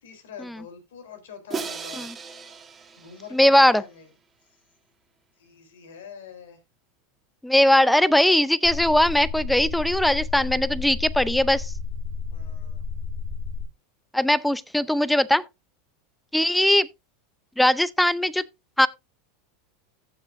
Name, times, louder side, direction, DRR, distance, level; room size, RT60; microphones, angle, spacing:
voice 1, 0.0-2.1 3.0-4.1 5.4-6.6 12.3-12.8, left 7 dB, 80° left, 3.6 m, -44 dB
Crash cymbal, 1.5-3.7, right 5 dB, 25° right, 1.7 m, -36 dB
voice 2, 3.3-3.8 7.4-11.7 14.1-15.4 16.3-16.9 17.6-18.4 18.8-18.9, left 1 dB, 5° left, 0.5 m, -20 dB
sound 1, 8.6-13.7, left 5 dB, 30° left, 6.0 m, -32 dB
14.5 x 7.2 x 2.6 m
hypercardioid pair, 110°, 0 cm